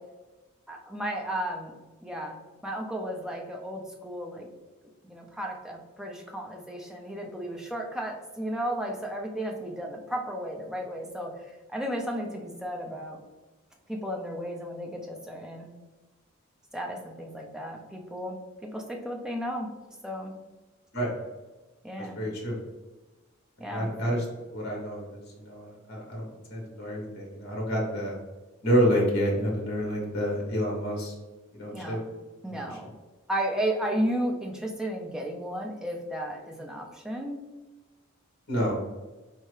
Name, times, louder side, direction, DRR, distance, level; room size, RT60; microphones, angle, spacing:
voice 1, 0.7-1.7 2.0-2.4 2.6-4.5 5.0-13.2 13.9-15.7 16.7-19.7 20.0-20.3 21.8-22.2 23.6-23.9 31.7-32.0 32.4-32.9 33.3-37.4, right 1 dB, 5° right, 0 dB, 0.5 m, -34 dB
voice 2, 22.0-22.6 23.7-24.2 24.5-28.2 28.6-31.1 31.5-32.0 32.5-32.8 38.5-38.9, equal, 50° left, -2 dB, 1.1 m, -29 dB
4.3 x 2.8 x 3.2 m, 1.2 s
head